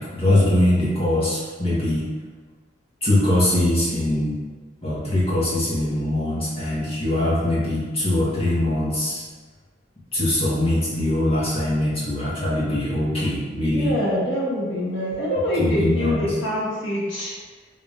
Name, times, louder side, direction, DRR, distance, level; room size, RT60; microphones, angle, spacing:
voice 1, 0.0-2.1 3.0-4.4 4.8-9.2 10.1-13.9 15.6-16.3, left 1 dB, 35° left, -9 dB, 1.4 m, -22 dB
voice 2, 13.7-17.3, left 1 dB, 85° left, -7 dB, 1.2 m, -25 dB
3.7 x 3.6 x 2.5 m, 1.4 s
head